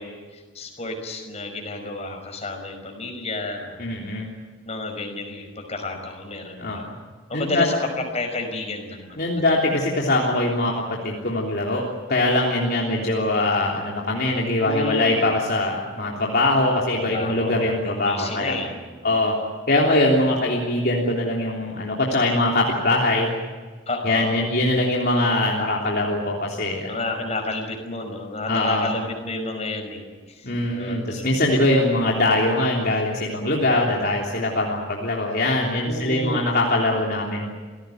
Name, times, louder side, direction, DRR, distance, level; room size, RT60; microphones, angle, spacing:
voice 1, 0.0-4.0 4.6-6.8 7.3-9.4 14.6-15.4 16.9-19.1 23.9-24.4 26.8-31.3 35.8-36.6, left 2 dB, 35° left, 4 dB, 5.5 m, -31 dB
voice 2, 3.8-4.3 6.6-6.9 7.3-7.7 9.2-18.6 19.0-19.4 19.7-23.3 24.0-27.0 28.5-28.9 30.4-37.5, left 2 dB, 50° left, -2 dB, 3.3 m, -22 dB
28.5 x 17.5 x 9.3 m, 1.5 s
head